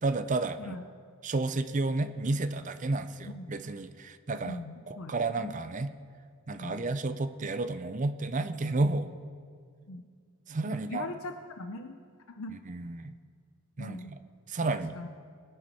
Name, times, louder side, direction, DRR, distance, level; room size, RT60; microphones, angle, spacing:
voice 1, 0.0-0.8 1.2-4.6 4.9-5.9 6.5-9.1 10.5-11.1 12.7-13.1 13.8-14.2 14.5-15.0, right 2 dB, 35° right, 10 dB, 0.5 m, -31 dB
voice 2, 4.4-5.1 5.4-5.5 6.5-6.8 9.9-10.0 10.7-12.0 12.3-12.6 13.8-14.1 14.6-15.1, left 2 dB, 75° left, 7 dB, 0.6 m, -41 dB
21.0 x 9.1 x 4.2 m, 2.1 s
head